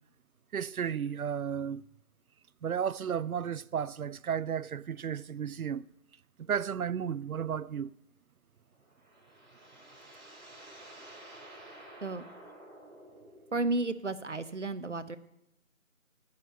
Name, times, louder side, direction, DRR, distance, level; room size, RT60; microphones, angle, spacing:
voice 1, 0.5-1.9 2.6-5.9 6.4-7.9, right 8 dB, 85° right, 0.5 m, -33 dB
sound 1, 8.7-13.9, right 1 dB, 30° right, 2.9 m, -51 dB
voice 2, 13.5-15.2, right 2 dB, 55° right, 0.9 m, -32 dB
15.0 x 6.7 x 6.7 m
figure-of-eight pair, 175°, 42 cm